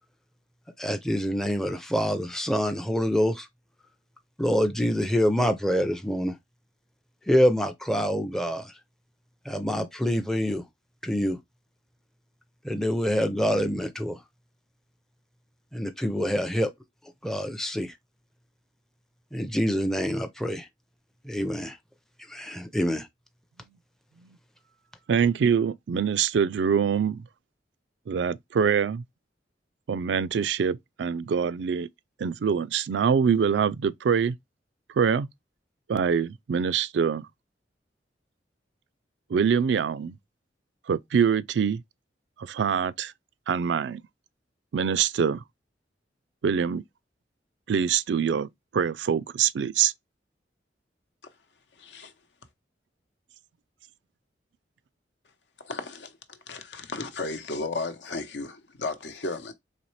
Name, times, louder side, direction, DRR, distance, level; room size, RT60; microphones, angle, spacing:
voice 1, 0.8-3.5 4.4-6.4 7.3-8.7 9.5-10.7 11.0-11.4 12.6-14.2 15.7-16.7 17.2-17.9 19.3-20.7 21.2-21.8 22.3-23.1, equal, 5° left, 0.5 m, -26 dB
voice 2, 25.1-27.3 28.1-29.0 29.9-31.9 32.2-34.4 34.9-35.3 35.9-37.3 39.3-40.2 40.9-41.8 42.4-43.1 43.5-44.0 44.7-45.4 46.4-46.8 47.7-49.9, right 7 dB, 70° right, 0.4 m, -24 dB
voice 3, 51.8-52.1 55.6-56.2 56.5-59.5, left 3 dB, 75° left, 0.9 m, -34 dB
4.1 x 3.3 x 3.2 m
head